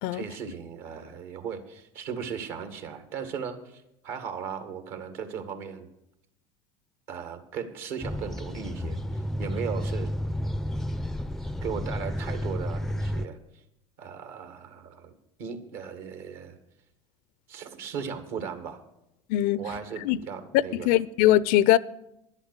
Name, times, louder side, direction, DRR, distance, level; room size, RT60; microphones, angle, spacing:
voice 1, 0.1-5.9 7.1-10.1 11.6-13.4 14.0-16.6 17.5-18.8 19.6-20.9, right 7 dB, 65° right, 1.9 m, -37 dB
sound 1, 8.0-13.3, equal, 5° left, 0.4 m, -31 dB
voice 2, 20.7-21.8, left 14 dB, 60° left, 0.5 m, -21 dB
11.0 x 8.3 x 8.1 m
hypercardioid pair, 90°, 16 cm